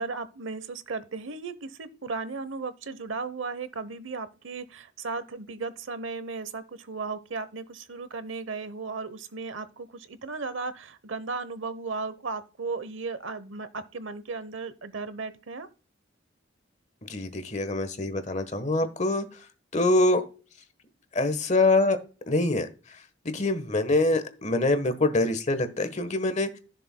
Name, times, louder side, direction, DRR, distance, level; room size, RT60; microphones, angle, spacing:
voice 1, 0.0-15.7, right 4 dB, 80° right, 0.9 m, -35 dB
voice 2, 17.1-19.4 19.7-20.2 21.1-22.0 22.3-23.0 23.2-26.6, left 2 dB, 35° left, 1.2 m, -25 dB
15.5 x 6.6 x 2.2 m
head